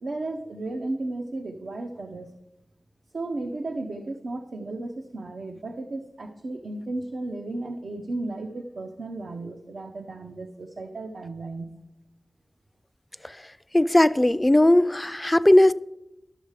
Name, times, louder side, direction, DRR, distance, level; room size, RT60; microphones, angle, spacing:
voice 1, 0.0-2.3 3.1-11.7, right 2 dB, 75° right, 0.6 m, -34 dB
voice 2, 13.7-15.7, left 1 dB, 15° left, 0.3 m, -18 dB
12.0 x 6.5 x 4.8 m
wide cardioid pair, 90°, 0 cm